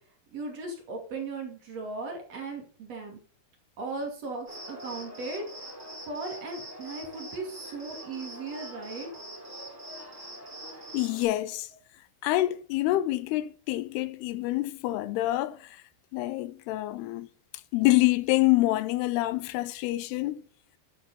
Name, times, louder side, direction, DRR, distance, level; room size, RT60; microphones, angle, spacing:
voice 1, 0.3-3.2 3.8-5.7 6.1-9.1, right 3 dB, 45° right, 3.1 m, -37 dB
Cricket, 4.5-11.2, right 1 dB, 15° right, 5.3 m, -43 dB
voice 2, 10.9-11.7 12.2-15.8 16.1-17.3 17.7-20.4, left 17 dB, 85° left, 2.7 m, -26 dB
10.0 x 7.4 x 4.2 m
omnidirectional pair, 4.5 m